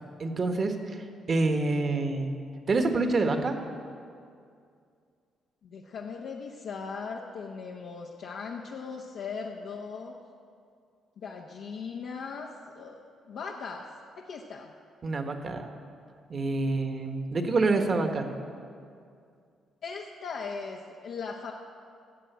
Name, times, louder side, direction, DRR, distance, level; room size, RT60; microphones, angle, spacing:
voice 1, 0.2-2.3 2.7-3.6 15.0-15.7 16.3-18.3, right 3 dB, 40° right, 5 dB, 1.4 m, -27 dB
voice 2, 5.6-10.2 11.2-13.9 14.2-14.7 19.8-21.5, left 5 dB, 75° left, -1 dB, 1.0 m, -39 dB
15.5 x 7.6 x 8.1 m, 2.3 s
cardioid pair, 90°, 0 cm